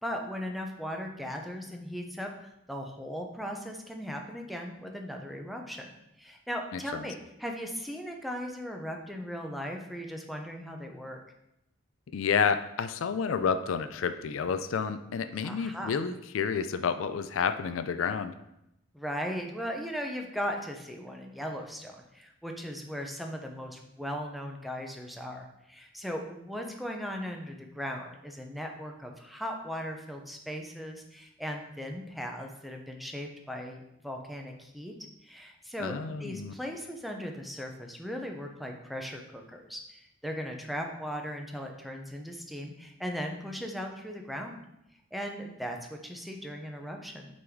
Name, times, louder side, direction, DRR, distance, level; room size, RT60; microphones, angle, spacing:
voice 1, 0.0-5.9 6.2-11.2 15.4-15.9 18.9-34.9 35.2-44.6 45.1-47.3, equal, ahead, 2 dB, 0.7 m, -38 dB
voice 2, 6.7-7.1 12.1-18.3 35.8-36.5, left 6 dB, 90° left, 10 dB, 0.4 m, -30 dB
6.2 x 4.0 x 4.6 m, 0.85 s
head